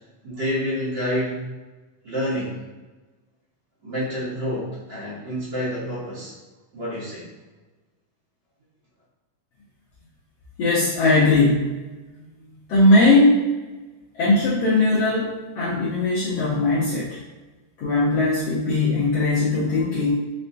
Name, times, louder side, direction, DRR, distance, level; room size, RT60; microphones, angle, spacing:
voice 1, 0.2-1.4 2.0-2.6 3.8-6.3 6.7-7.2, equal, 55° right, -10 dB, 1.2 m, -28 dB
voice 2, 10.6-11.7 12.7-13.4 14.2-17.2 17.8-20.1, left 2 dB, 85° left, -9 dB, 1.4 m, -19 dB
6.7 x 2.2 x 2.6 m, 1.2 s
omnidirectional pair, 3.9 m